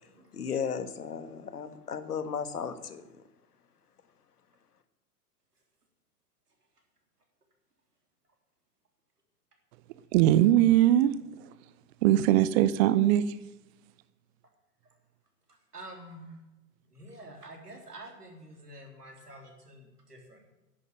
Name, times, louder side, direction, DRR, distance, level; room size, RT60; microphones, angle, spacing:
voice 1, 0.3-3.0, left 6 dB, 80° left, 11 dB, 1.6 m, -35 dB
voice 2, 10.1-11.1 11.5-11.6 12.0-13.4, right 13 dB, 45° right, 15 dB, 0.8 m, -21 dB
voice 3, 15.7-16.4 16.9-20.5, right 1 dB, 90° right, 2 dB, 3.7 m, -48 dB
10.5 x 9.5 x 9.1 m, 1.0 s
figure-of-eight pair, 100°, 46 cm